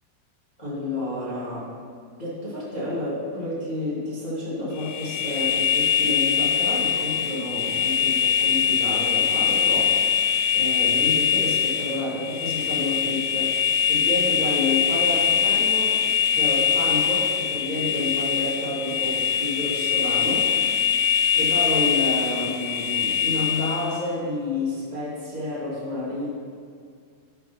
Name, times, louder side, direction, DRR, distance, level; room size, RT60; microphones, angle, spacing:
voice 1, 0.6-1.7 2.2-10.2 10.5-20.5 20.9-26.3, left 2 dB, 50° left, -9 dB, 0.5 m, -30 dB
sound 1, 4.8-24.0, left 8 dB, 85° left, 2.0 m, -23 dB
11.0 x 4.7 x 5.9 m, 2.2 s
omnidirectional pair, 4.8 m